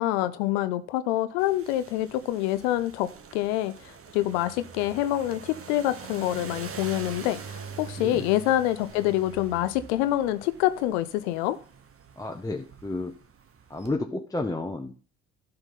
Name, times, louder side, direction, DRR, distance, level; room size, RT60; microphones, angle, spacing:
voice 1, 0.0-3.7 4.1-11.6, left 14 dB, 85° left, 0.5 m, -26 dB
sound 1, 1.4-13.9, right 6 dB, 40° right, 1.2 m, -44 dB
voice 2, 8.0-8.3 12.2-13.1 13.7-14.9, left 2 dB, 10° left, 1.0 m, -31 dB
12.0 x 5.6 x 4.0 m
hypercardioid pair, 55°, 33 cm